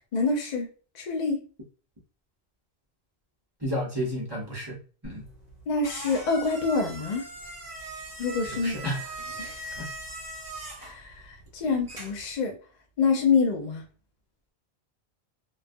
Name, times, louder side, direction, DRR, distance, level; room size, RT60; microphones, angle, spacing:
voice 1, 0.1-0.7 0.9-1.4 5.7-7.3 8.2-8.8 9.3-9.7 10.8-12.5 13.0-13.8, left 4 dB, 55° left, 2 dB, 0.5 m, -26 dB
voice 2, 3.6-4.8 5.0-5.2 8.6-9.0 9.8-9.9, equal, 25° right, -3 dB, 0.7 m, -31 dB
sound 1, 5.0-12.3, right 1 dB, 45° right, 0.9 m, -41 dB
2.3 x 2.2 x 2.5 m, 0.38 s
omnidirectional pair, 1.1 m